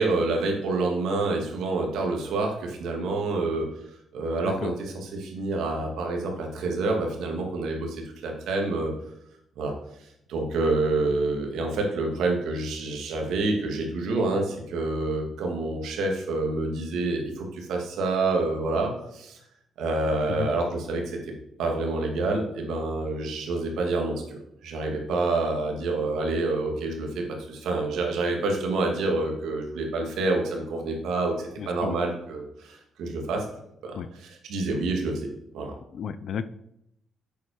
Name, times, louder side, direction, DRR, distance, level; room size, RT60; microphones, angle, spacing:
voice 1, 0.0-3.7 4.1-8.9 9.6-9.7 10.3-19.4 19.8-21.2 21.6-33.5 33.8-35.3 35.5-35.7, right 2 dB, 80° right, 2 dB, 2.3 m, -27 dB
voice 2, 4.4-4.7 20.3-20.5 31.6-32.0 33.9-34.1 35.9-36.4, left 7 dB, 60° left, 14 dB, 0.6 m, -32 dB
8.2 x 7.1 x 4.8 m, 0.79 s
cardioid pair, 90°, 0 cm